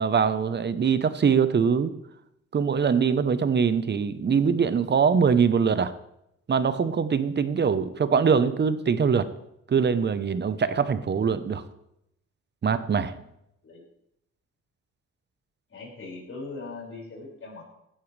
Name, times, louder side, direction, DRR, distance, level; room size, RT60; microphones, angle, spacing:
voice 1, 0.0-1.9 2.5-5.9 6.5-9.3 9.7-11.6 12.6-13.1, right 6 dB, 35° right, 13 dB, 1.0 m, -23 dB
voice 2, 15.7-17.6, left 3 dB, 45° left, -2 dB, 5.9 m, -40 dB
16.5 x 11.5 x 3.4 m, 0.80 s
cardioid pair, 90°, 30 cm